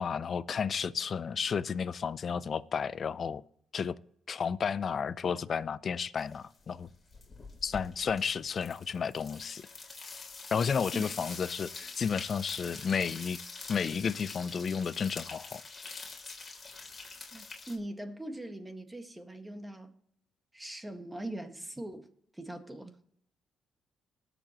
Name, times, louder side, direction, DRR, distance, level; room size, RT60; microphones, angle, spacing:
voice 1, 0.0-3.4 3.7-4.0 4.3-6.9 7.6-9.6 10.5-13.4 13.7-15.6, left 6 dB, 50° left, 0.6 m, -32 dB
sound 1, 6.2-6.6 6.8-17.8, left 4 dB, 30° left, 3.3 m, -45 dB
voice 2, 17.3-19.9 20.5-22.1 22.4-22.9, right 1 dB, 10° right, 1.7 m, -41 dB
20.0 x 7.0 x 3.0 m
cardioid pair, 90°, 0 cm